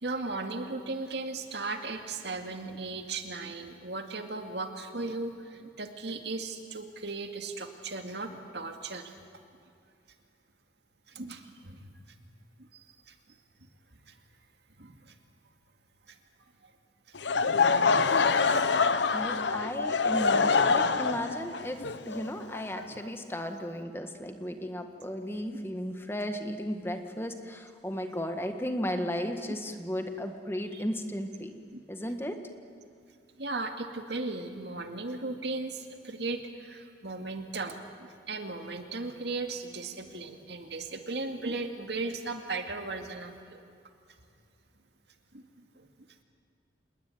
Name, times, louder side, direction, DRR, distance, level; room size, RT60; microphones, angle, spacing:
voice 1, 0.0-9.1 11.1-11.9 12.6-13.1 14.1-14.2 14.8-15.2 16.1-16.2 16.6-16.7 17.4-19.2 19.8-19.9 30.7-30.8 31.7-31.8 33.3-43.6 45.3-45.9, right 3 dB, 75° right, 5 dB, 2.2 m, -37 dB
Laughter / Crowd, 17.2-23.1, left 4 dB, 85° left, 0.9 m, -25 dB
voice 2, 19.1-31.6 31.9-32.4, equal, 15° left, 6 dB, 1.5 m, -35 dB
27.5 x 20.5 x 9.3 m, 2.3 s
head